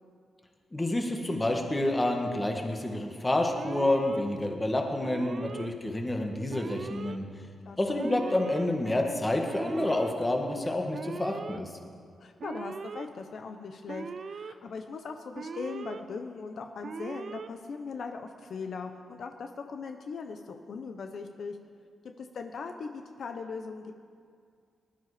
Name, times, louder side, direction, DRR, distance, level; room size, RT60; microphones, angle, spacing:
voice 1, 0.7-7.2 7.8-11.7, left 1 dB, 15° left, 2 dB, 1.8 m, -28 dB
Alarm, 3.6-4.2 5.0-5.7 6.5-7.2 8.0-8.6 9.4-10.1 10.9-11.6 12.4-13.1 13.9-14.5 15.3-16.0 16.8-17.5, right 5 dB, 50° right, 0.6 m, -40 dB
voice 2, 7.6-8.1 12.2-21.6 22.2-23.9, left 5 dB, 60° left, 5 dB, 1.0 m, -39 dB
20.0 x 12.5 x 5.1 m, 2.3 s
wide cardioid pair, 125°, 0 cm